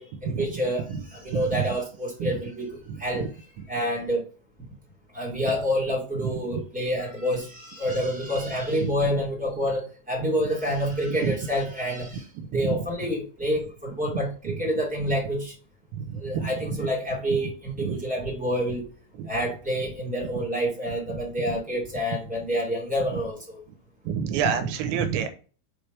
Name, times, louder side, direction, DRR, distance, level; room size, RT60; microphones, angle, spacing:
voice 1, 0.0-3.3 3.7-4.2 5.1-15.5 16.1-18.8 19.2-23.6, equal, 5° right, -3 dB, 0.9 m, -28 dB
voice 2, 2.9-3.3 6.5-6.6 11.1-11.3 12.5-12.8 14.4-14.5 16.0-16.8 17.8-18.0 19.2-19.3 24.1-25.3, right 7 dB, 85° right, 7 dB, 3.2 m, -28 dB
7.8 x 3.3 x 4.9 m, 0.38 s
omnidirectional pair, 5.3 m